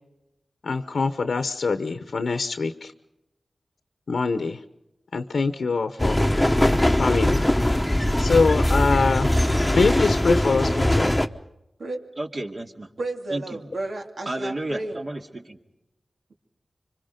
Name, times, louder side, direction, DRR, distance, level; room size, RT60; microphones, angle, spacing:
voice 1, 0.6-2.9 4.1-4.6 5.1-6.2 6.9-7.4 8.2-9.3 9.7-11.1, left 4 dB, 85° left, 9 dB, 0.9 m, -24 dB
sound 1, 6.0-11.3, left 1 dB, 10° left, 1.0 m, -21 dB
voice 2, 12.2-12.9 13.3-13.7 14.3-15.6, right 1 dB, 50° right, 3 dB, 2.3 m, -32 dB
voice 3, 13.0-15.0, right 2 dB, 80° right, 3 dB, 2.6 m, -32 dB
25.5 x 25.0 x 5.2 m, 0.89 s
wide cardioid pair, 60°, 0 cm